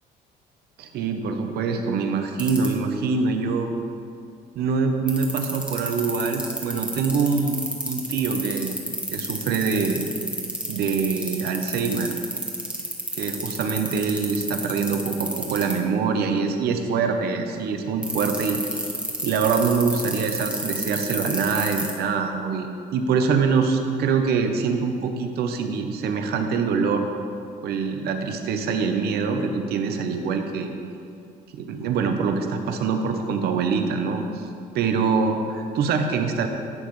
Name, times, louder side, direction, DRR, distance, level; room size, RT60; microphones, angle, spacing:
voice 1, 0.8-3.7 4.5-7.6 7.8-8.8 9.1-10.1 10.7-12.1 13.1-18.9 19.2-27.1 27.6-30.7 31.5-34.5 34.7-36.5, right 5 dB, 70° right, 5 dB, 0.9 m, -24 dB
sound 1, 2.4-2.7 5.1-15.7 18.0-21.9, right 1 dB, 5° right, 1.3 m, -28 dB
11.0 x 7.2 x 3.2 m, 2.4 s
cardioid pair, 110°, 17 cm